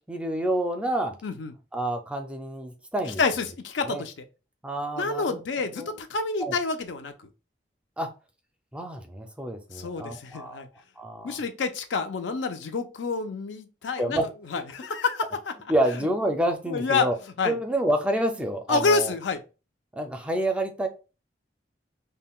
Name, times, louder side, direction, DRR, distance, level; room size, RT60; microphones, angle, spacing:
voice 1, 0.1-1.2 1.7-3.2 3.8-4.0 4.6-5.4 5.8-6.0 6.4-6.5 8.0-8.1 8.7-10.7 11.0-11.4 14.0-14.2 15.7-17.1 17.4-19.1 19.9-20.9, right 1 dB, 5° right, 0.4 m, -28 dB
voice 2, 1.2-1.5 3.2-4.1 5.0-7.3 9.7-10.7 11.2-14.2 14.5-15.5 16.0-16.1 16.7-17.1 17.4-17.6 18.7-19.4, left 4 dB, 85° left, 0.5 m, -28 dB
5.4 x 2.1 x 2.3 m
head